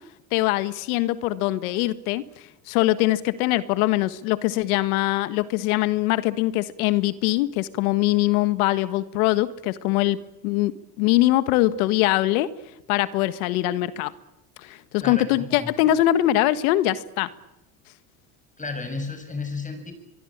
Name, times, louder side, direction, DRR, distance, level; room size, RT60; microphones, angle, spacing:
voice 1, 0.3-2.2 2.7-12.5 12.9-14.1 14.6-17.3, left 16 dB, 85° left, 13 dB, 1.6 m, -22 dB
voice 2, 15.0-15.7 18.6-19.9, left 3 dB, 20° left, 8 dB, 7.5 m, -33 dB
24.0 x 23.0 x 8.8 m, 0.88 s
supercardioid pair, 95°, 42 cm